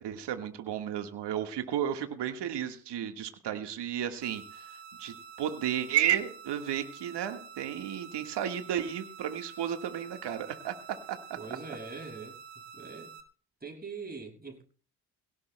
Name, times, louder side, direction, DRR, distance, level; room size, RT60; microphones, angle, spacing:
voice 1, 0.0-4.7 5.0-10.7 11.1-11.2, right 10 dB, 60° right, 1.7 m, -33 dB
sound 1, 4.2-13.2, right 6 dB, 80° right, 1.7 m, -48 dB
voice 2, 11.4-12.4 12.7-13.2 13.6-14.6, right 4 dB, 20° right, 6.2 m, -42 dB
22.0 x 17.5 x 2.2 m
hypercardioid pair, 55°, 45 cm